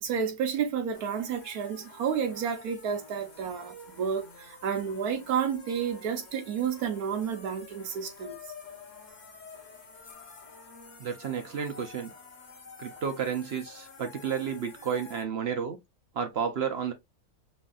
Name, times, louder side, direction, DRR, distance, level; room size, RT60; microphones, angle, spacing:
voice 1, 0.0-8.4, right 7 dB, 85° right, 1.4 m, -31 dB
sound 1, 0.9-15.2, left 4 dB, 35° left, 1.0 m, -49 dB
voice 2, 11.0-12.1 12.8-15.8 16.1-16.9, right 7 dB, 55° right, 0.7 m, -31 dB
5.2 x 2.5 x 2.4 m
omnidirectional pair, 1.6 m